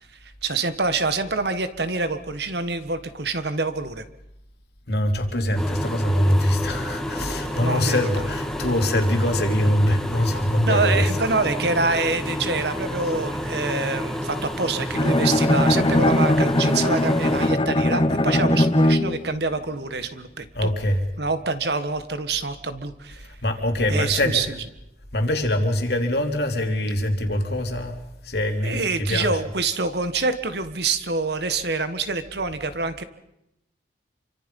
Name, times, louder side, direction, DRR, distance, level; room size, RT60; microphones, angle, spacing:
voice 1, 0.2-4.0 7.6-8.3 10.7-20.7 21.2-23.3 23.9-24.6 28.6-33.0, right 3 dB, 60° right, 11 dB, 1.5 m, -26 dB
voice 2, 4.9-11.0 20.5-21.0 23.4-24.4 25.1-28.0 28.2-29.3, left 1 dB, 60° left, 4 dB, 3.1 m, -23 dB
sound 1, 5.6-17.5, equal, 5° left, 1.7 m, -30 dB
Bowed string instrument, 14.9-19.3, left 1 dB, 30° left, 0.9 m, -20 dB
27.5 x 25.0 x 5.4 m, 0.83 s
head